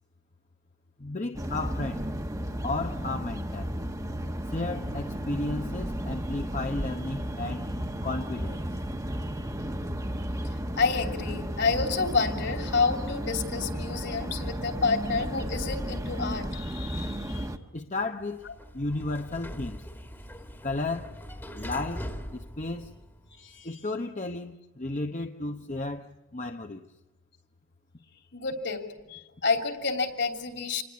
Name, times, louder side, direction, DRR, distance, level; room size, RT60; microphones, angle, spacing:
voice 1, 1.0-2.0 2.6-3.7 4.5-7.7 8.0-8.7 17.7-18.4 18.7-19.8 20.6-21.1 21.6-22.1 22.3-22.9 23.6-26.8, left 2 dB, 35° left, 0.9 m, -33 dB
sound 1, 1.3-17.6, equal, 15° right, 1.2 m, -33 dB
voice 2, 10.7-17.5 23.4-23.8 28.3-30.8, left 4 dB, 55° left, 3.1 m, -29 dB
Sliding door, 18.2-23.4, equal, 10° left, 1.7 m, -41 dB
27.5 x 20.0 x 8.6 m
head